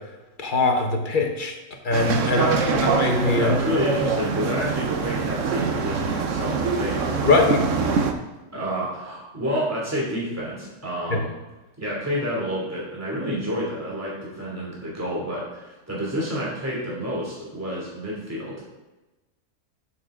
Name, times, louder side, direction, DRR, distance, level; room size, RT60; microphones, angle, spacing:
voice 1, 0.4-1.6 1.8-3.6 7.2-7.6 11.1-11.2, left 3 dB, 35° left, 3 dB, 1.3 m, -22 dB
sound 1, 1.9-8.1, right 5 dB, 60° right, 1.1 m, -24 dB
voice 2, 2.2-3.0 3.4-7.5 8.5-11.3 11.8-18.6, equal, 10° right, -5 dB, 2.7 m, -29 dB
12.5 x 6.3 x 3.7 m, 1.1 s
omnidirectional pair, 1.6 m